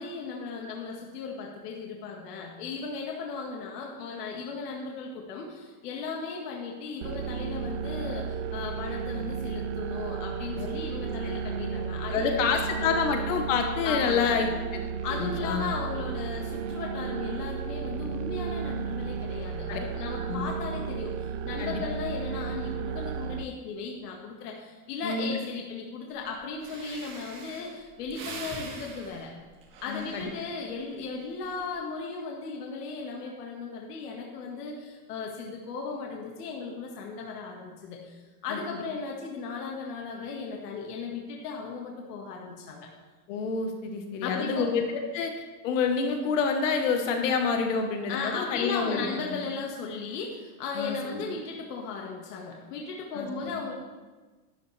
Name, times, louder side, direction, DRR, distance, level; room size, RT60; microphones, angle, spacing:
voice 1, 0.0-12.5 12.8-12.9 13.8-14.4 15.0-29.3 29.8-42.9 44.2-44.7 48.1-53.7, left 4 dB, 80° left, 0 dB, 1.8 m, -36 dB
sound 1, 7.0-23.4, right 6 dB, 50° right, 0.6 m, -33 dB
voice 2, 12.1-14.5 15.2-15.7 19.7-19.8 20.3-20.5 21.6-21.8 25.0-25.3 29.9-30.3 38.5-38.6 43.3-45.3 45.6-49.4 50.7-51.2 53.1-53.7, left 5 dB, 55° left, 4 dB, 1.3 m, -28 dB
Breathing, 26.3-26.4 26.6-30.8 31.3-31.7, right 4 dB, 25° right, 1.8 m, -44 dB
12.0 x 11.5 x 3.3 m, 1.3 s
supercardioid pair, 175°, 46 cm